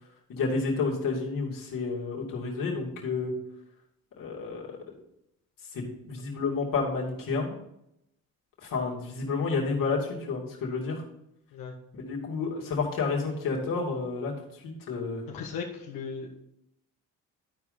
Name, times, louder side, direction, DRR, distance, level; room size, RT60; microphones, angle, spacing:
voice 1, 0.3-3.3 4.2-4.6 5.7-7.6 8.6-11.0 11.9-15.2, left 4 dB, 75° left, -2 dB, 2.6 m, -30 dB
voice 2, 15.3-16.4, left 5 dB, 90° left, -1 dB, 1.3 m, -37 dB
12.5 x 4.8 x 4.0 m, 0.80 s
cardioid pair, 85°, 34 cm